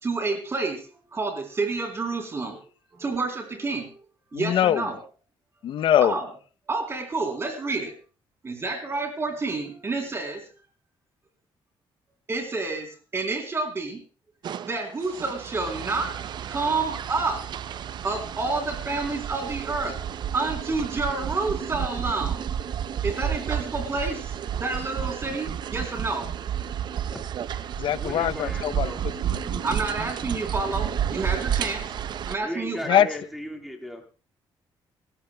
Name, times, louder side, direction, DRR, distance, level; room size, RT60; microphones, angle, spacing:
voice 1, 0.0-2.6 2.9-4.0 4.3-5.0 6.0-6.3 6.7-7.9 8.4-10.4 12.3-14.0 14.6-16.2 16.5-17.5 18.0-20.0 20.3-22.5 23.0-24.3 24.6-26.3 29.6-31.8 32.3-33.0, right 3 dB, 30° right, 4 dB, 3.4 m, -29 dB
voice 2, 4.3-4.9 5.6-6.2 27.8-28.9 29.5-29.6 32.9-33.1, left 10 dB, 65° left, 16 dB, 0.6 m, -22 dB
sound 1, 14.4-32.4, right 9 dB, 55° right, 0.6 m, -31 dB
voice 3, 27.1-27.5 27.9-29.0 32.4-34.0, equal, ahead, 1 dB, 1.9 m, -37 dB
27.5 x 13.5 x 2.3 m, 0.36 s
cardioid pair, 135°, 9 cm